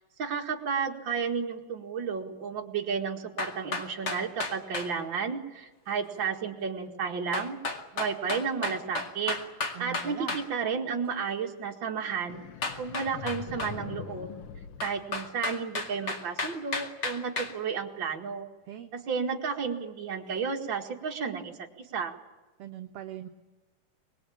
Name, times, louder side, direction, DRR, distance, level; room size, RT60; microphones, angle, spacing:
voice 1, 0.2-7.6 7.9-9.4 9.8-12.4 12.8-14.3 14.8-18.5 18.9-22.2, right 6 dB, 45° right, 2 dB, 2.5 m, -32 dB
sound 1, 3.4-4.9 7.3-10.5 12.6-13.7 14.8-17.5, left 3 dB, 40° left, 2.6 m, -33 dB
voice 2, 9.8-10.4 18.7-18.9 22.6-23.3, right 11 dB, 65° right, 6 dB, 1.8 m, -40 dB
sound 2, 12.3-15.8, left 8 dB, 60° left, 1.9 m, -43 dB
24.5 x 21.0 x 8.7 m, 1.2 s
omnidirectional pair, 3.4 m